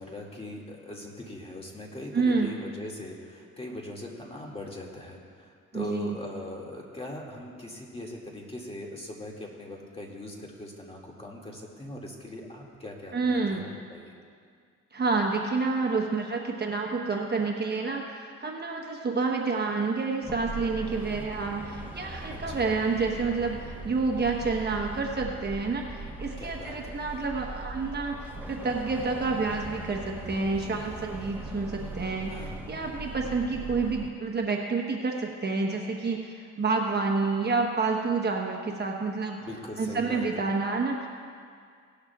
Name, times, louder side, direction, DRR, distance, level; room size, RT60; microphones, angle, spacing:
voice 1, 0.0-14.1 22.5-22.6 26.4-27.1 32.3-32.7 39.4-40.4, left 1 dB, 20° left, -2 dB, 2.2 m, -41 dB
voice 2, 2.1-2.6 5.7-6.2 13.1-13.6 14.9-28.1 28.5-39.4 39.8-41.1, right 4 dB, 35° right, 1 dB, 1.1 m, -29 dB
sound 1, 20.2-34.1, right 2 dB, 5° right, 1.1 m, -40 dB
18.0 x 11.5 x 2.4 m, 2.2 s
cardioid pair, 90°, 30 cm